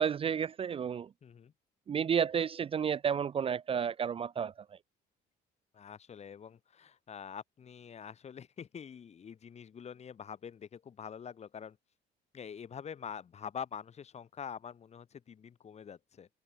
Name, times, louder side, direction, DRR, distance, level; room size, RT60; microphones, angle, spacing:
voice 1, 0.0-1.1 1.9-4.5, right 7 dB, 35° right, 0.5 m, -31 dB
voice 2, 1.2-1.5 5.7-11.8 12.3-16.3, left 7 dB, 40° left, 2.7 m, -45 dB
cardioid pair, 110°, 17 cm